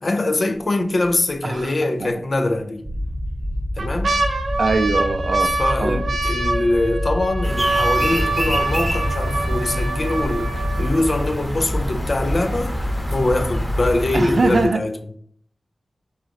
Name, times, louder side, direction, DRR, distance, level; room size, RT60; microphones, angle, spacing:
voice 1, 0.0-2.9 3.8-4.1 5.6-12.7 13.1-15.0, left 2 dB, 55° left, 0.5 m, -23 dB
sound 1, 0.6-1.1 1.5-1.6 2.5-3.1 3.5-11.5 12.2-12.3 12.5-12.9 13.4-13.5, right 2 dB, 85° right, 0.7 m, -25 dB
voice 2, 1.4-1.7 2.0-2.1 4.6-5.5 5.8-6.0 14.1-14.8, right 3 dB, 60° right, 0.4 m, -21 dB
sound 2, 2.8-14.0, left 1 dB, 30° right, 0.7 m, -27 dB
sound 3, 7.4-14.7, equal, 15° left, 1.0 m, -28 dB
3.9 x 3.1 x 3.8 m
cardioid pair, 50°, 0 cm